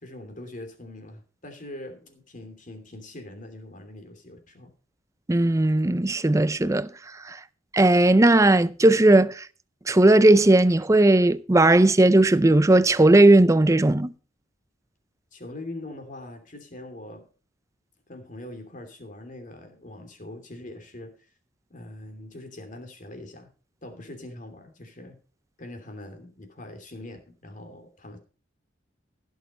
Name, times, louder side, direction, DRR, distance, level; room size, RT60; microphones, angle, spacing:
voice 1, 0.0-4.7 15.3-17.2 18.1-21.3 21.7-23.5 23.8-25.2 25.6-28.2, left 1 dB, 40° left, 3.0 m, -42 dB
voice 2, 5.3-6.9 7.3-7.4 7.7-9.4 9.9-14.1, right 2 dB, 15° right, 0.5 m, -17 dB
15.5 x 6.6 x 5.4 m
head